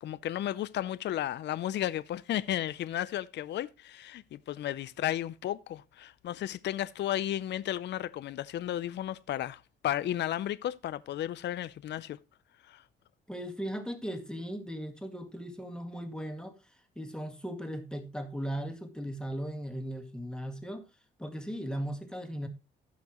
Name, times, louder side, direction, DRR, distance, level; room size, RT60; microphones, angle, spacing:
voice 1, 0.0-12.2 12.7-12.8, left 12 dB, 60° left, 0.5 m, -33 dB
voice 2, 13.3-16.6 17.0-20.8 21.2-22.5, equal, 5° left, 2.0 m, -37 dB
16.0 x 5.8 x 3.0 m
cardioid pair, 90°, 20 cm